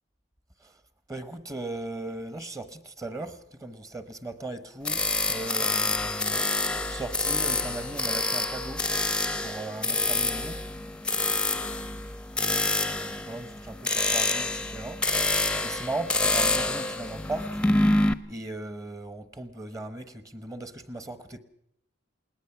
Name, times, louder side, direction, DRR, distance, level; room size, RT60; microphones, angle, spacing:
voice 1, 1.1-8.9 9.4-10.6 12.4-15.0 15.6-17.6 18.3-21.4, right 2 dB, 15° right, 1.0 m, -38 dB
sound 1, 4.8-18.1, left 2 dB, 5° left, 0.7 m, -27 dB
20.5 x 18.5 x 7.0 m
head